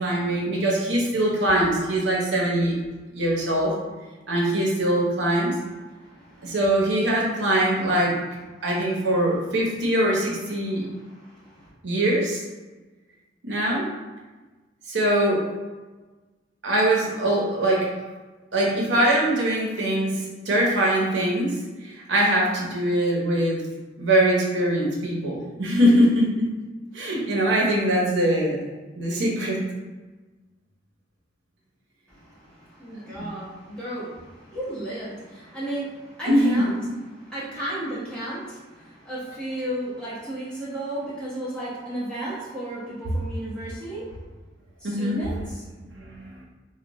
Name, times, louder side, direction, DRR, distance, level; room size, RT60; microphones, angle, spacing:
voice 1, 0.0-2.7 3.1-3.8 4.3-5.5 6.4-8.2 8.6-10.9 11.8-12.4 13.4-13.9 14.9-15.5 16.6-17.9 18.5-20.2 20.5-23.6 24.0-26.5 26.9-28.6 29.0-29.6 36.3-37.0 44.8-45.2 45.8-46.3, right 1 dB, 70° right, -3 dB, 0.8 m, -22 dB
voice 2, 5.9-6.6 8.6-9.1 10.7-11.7 32.1-36.7 37.1-44.3 44.8-45.6, right 1 dB, 5° left, -10 dB, 1.1 m, -34 dB
3.5 x 2.3 x 3.0 m, 1.2 s
head